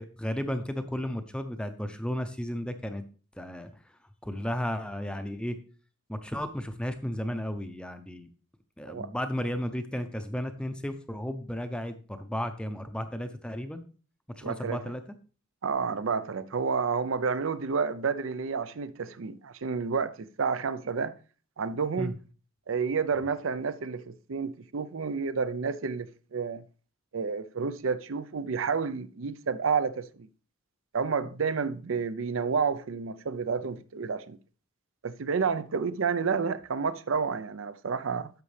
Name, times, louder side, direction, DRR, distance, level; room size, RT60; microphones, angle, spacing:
voice 1, 0.0-3.0 3.4-3.7 4.2-5.6 6.1-8.3 8.8-13.8 14.4-15.0 22.0-22.1, equal, 5° left, 0.6 m, -34 dB
voice 2, 14.4-14.8 15.6-21.1 21.6-22.2 22.7-26.6 27.1-30.3 30.9-34.4 35.0-38.3, right 5 dB, 70° right, 0.5 m, -30 dB
10.5 x 6.9 x 3.3 m
head